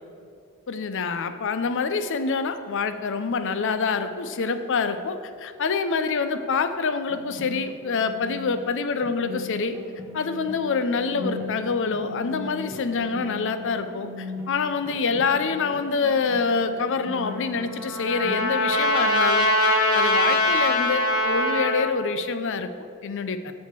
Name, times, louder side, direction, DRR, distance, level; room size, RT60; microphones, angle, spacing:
voice 1, 0.7-9.8 10.1-19.5 19.9-23.5, left 4 dB, 60° left, 10 dB, 0.6 m, -26 dB
sound 1, 7.1-18.5, left 3 dB, 10° right, 1.3 m, -38 dB
Trumpet, 17.2-21.9, left 1 dB, 75° left, 1.5 m, -22 dB
7.3 x 6.4 x 7.4 m, 2.4 s
head